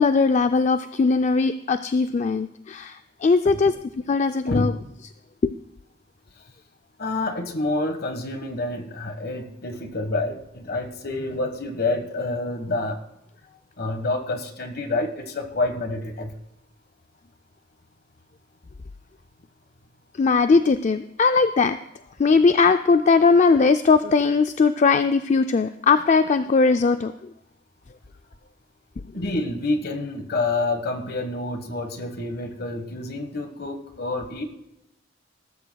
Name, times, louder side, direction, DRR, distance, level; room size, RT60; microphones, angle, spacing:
voice 1, 0.0-3.8 4.1-4.7 5.4-5.5 20.2-21.8 22.2-27.3, left 4 dB, 40° left, 10 dB, 0.4 m, -19 dB
voice 2, 7.0-12.9 13.8-16.3 29.1-34.4, left 2 dB, 55° left, 7 dB, 1.5 m, -28 dB
20.0 x 13.0 x 2.3 m, 0.87 s
head